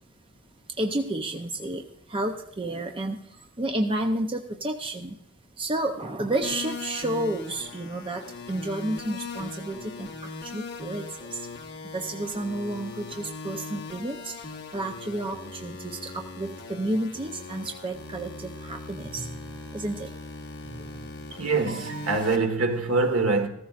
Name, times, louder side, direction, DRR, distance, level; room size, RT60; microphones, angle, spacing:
voice 1, 0.7-5.2 5.6-11.5 11.9-19.4 19.7-20.1 20.6-21.1, right 1 dB, 25° right, 0.6 m, -31 dB
sound 1, 6.4-22.4, left 3 dB, 50° left, 1.3 m, -40 dB
voice 2, 21.3-23.5, right 3 dB, 75° right, 1.5 m, -24 dB
14.5 x 14.5 x 2.5 m
head